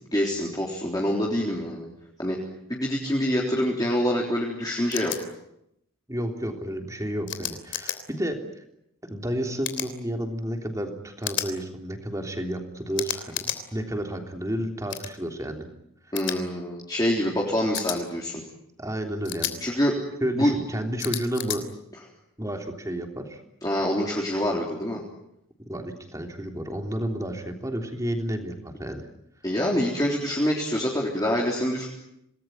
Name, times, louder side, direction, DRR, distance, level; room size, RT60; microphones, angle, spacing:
voice 1, 0.1-1.9 2.2-2.4 2.7-5.2 16.1-18.4 19.6-20.0 20.3-20.5 23.6-25.0 29.4-31.9, equal, 20° left, -2 dB, 3.7 m, -25 dB
sound 1, 4.9-5.2 7.3-8.0 9.6-9.9 11.2-11.5 13.0-13.6 14.9-15.1 16.2-16.4 17.7-18.0 19.2-19.5 21.0-21.6, left 10 dB, 60° left, 3.3 m, -31 dB
voice 2, 6.1-8.4 9.1-13.4 13.7-15.7 16.1-16.2 18.8-19.6 20.2-21.6 22.4-23.4 25.7-29.1, equal, 15° right, 4 dB, 3.3 m, -31 dB
27.5 x 20.0 x 9.3 m, 0.81 s
head